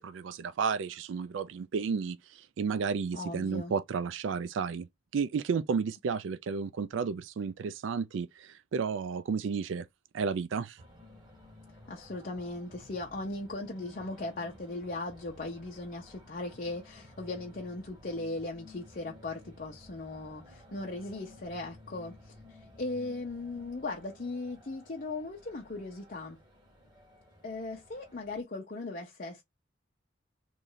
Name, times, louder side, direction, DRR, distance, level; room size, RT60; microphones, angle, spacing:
voice 1, 0.0-9.8 10.1-10.8, right 5 dB, 85° right, 0.4 m, -32 dB
voice 2, 3.1-3.7 11.9-26.4 27.4-29.4, left 2 dB, 45° left, 0.7 m, -38 dB
sound 1, 10.8-28.4, left 1 dB, 25° right, 1.7 m, -54 dB
3.1 x 2.6 x 3.8 m
head